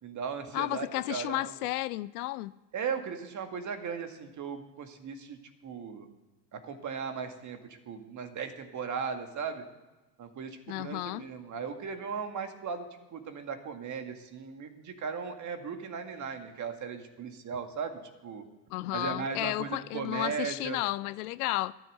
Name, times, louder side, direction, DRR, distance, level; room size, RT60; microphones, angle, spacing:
voice 1, 0.0-1.7 2.7-6.1 6.5-9.7 10.2-18.5 18.9-20.8, right 6 dB, 35° right, 2.0 m, -37 dB
voice 2, 0.5-2.5 10.7-11.3 18.7-21.7, left 18 dB, 65° left, 0.5 m, -32 dB
13.0 x 11.0 x 6.6 m
hypercardioid pair, 75°, 49 cm